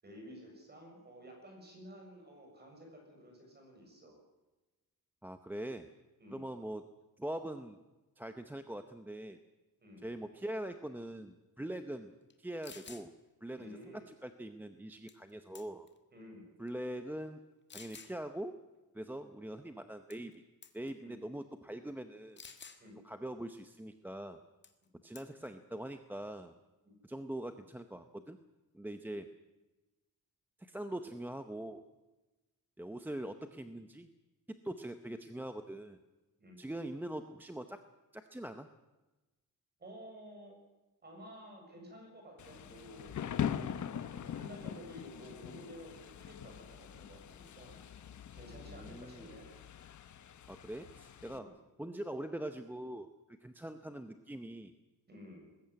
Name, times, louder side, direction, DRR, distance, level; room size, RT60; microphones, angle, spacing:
voice 1, 0.0-4.2 6.2-6.4 9.8-10.0 13.6-14.0 16.1-16.4 21.0-21.1 22.8-23.0 36.4-36.6 39.8-40.6 41.0-43.2 43.9-49.5 51.3-51.5 55.1-55.5, equal, 30° right, 2 dB, 6.8 m, -52 dB
voice 2, 5.2-5.9 6.3-6.9 7.2-7.8 8.2-9.4 10.0-12.1 12.4-13.1 13.4-15.9 16.6-17.4 17.7-18.6 18.9-20.3 20.7-22.4 23.0-24.4 25.0-26.5 27.0-28.4 28.7-29.3 30.6-31.8 32.8-34.1 34.5-36.0 36.6-37.8 38.1-38.7 48.7-49.3 50.5-54.7, right 1 dB, 5° right, 8 dB, 0.7 m, -43 dB
sound 1, 12.3-12.4 12.6-13.1 15.1-15.3 15.6-16.0 16.7-16.8 17.7-18.1 20.1-20.4 20.6-20.9 22.4-22.8 24.6-24.8 25.2-25.5, left 5 dB, 30° left, 1.6 m, -51 dB
Thunder / Rain, 42.4-51.4, left 9 dB, 55° left, 1.1 m, -42 dB
20.5 x 15.5 x 9.6 m, 1.1 s
wide cardioid pair, 175°, 34 cm